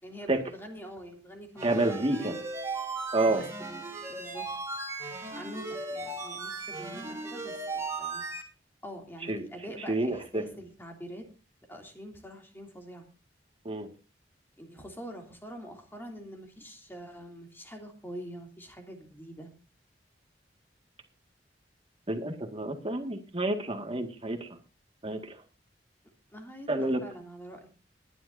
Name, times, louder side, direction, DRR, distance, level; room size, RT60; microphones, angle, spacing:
voice 1, 0.0-2.4 3.2-3.8 4.1-4.5 5.3-8.2 8.8-11.2 11.7-13.1 14.6-19.5 26.3-27.7, equal, 15° left, 2 dB, 3.0 m, -45 dB
sound 1, 1.6-8.4, right 3 dB, 15° right, 3.3 m, -37 dB
voice 2, 1.6-2.4 3.1-3.4 9.3-9.4 9.9-10.4 13.7-13.9 22.1-24.6 25.0-25.4 26.7-27.0, right 2 dB, 30° right, 5 dB, 2.0 m, -29 dB
21.0 x 11.0 x 2.7 m, 0.33 s
head